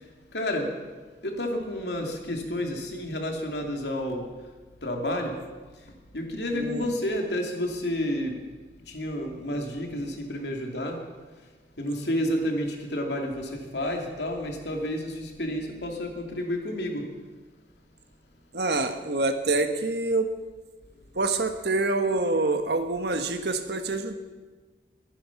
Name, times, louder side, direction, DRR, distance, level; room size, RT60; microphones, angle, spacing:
voice 1, 0.3-0.7 1.2-4.3 4.8-5.4 6.1-8.4 8.9-11.0 11.8-17.1, left 1 dB, 75° left, 2 dB, 2.7 m, -30 dB
voice 2, 6.5-6.9 18.5-20.3 21.1-24.1, right 2 dB, 65° right, 7 dB, 1.4 m, -26 dB
23.0 x 10.0 x 6.0 m, 1.3 s
head